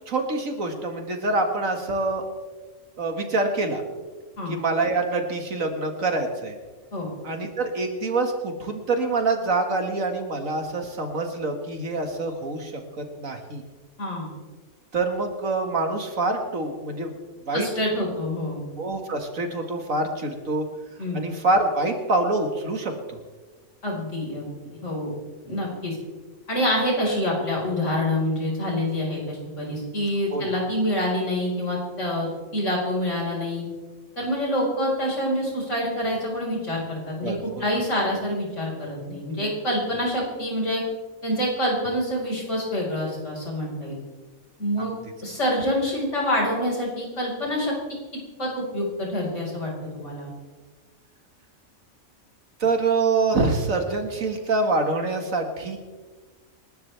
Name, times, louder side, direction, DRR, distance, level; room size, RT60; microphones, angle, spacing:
voice 1, 0.1-2.3 3.0-3.8 4.5-6.6 7.2-12.8 13.2-13.6 14.9-17.1 17.5-17.7 18.8-20.7 21.1-23.2 30.3-30.5 37.2-37.6 44.8-44.9 52.6-55.8, right 3 dB, 70° right, 4 dB, 2.3 m, -25 dB
voice 2, 14.0-14.3 17.5-18.6 21.0-21.2 23.8-25.1 25.4-26.0 26.5-33.6 34.2-40.8 41.2-44.0 44.6-44.9 45.2-47.7 48.1-50.3, left 1 dB, 60° left, -3 dB, 5.3 m, -26 dB
28.0 x 12.0 x 3.5 m, 1.3 s
omnidirectional pair, 1.4 m